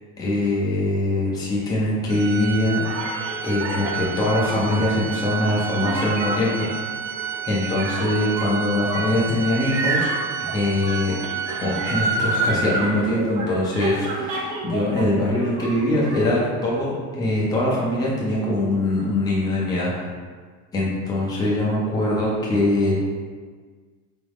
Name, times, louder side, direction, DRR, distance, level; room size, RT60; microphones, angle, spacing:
voice 1, 0.2-2.8 3.4-6.7 7.5-10.1 10.4-11.1 11.5-20.0 20.7-22.9, left 1 dB, 10° left, -5 dB, 0.5 m, -22 dB
Organ, 2.1-12.7, right 8 dB, 60° right, 0.5 m, -31 dB
sound 1, 2.8-15.0 15.3-16.2, right 2 dB, 75° right, 1.2 m, -29 dB
4.1 x 3.6 x 3.5 m, 1.5 s
supercardioid pair, 155°, 49 cm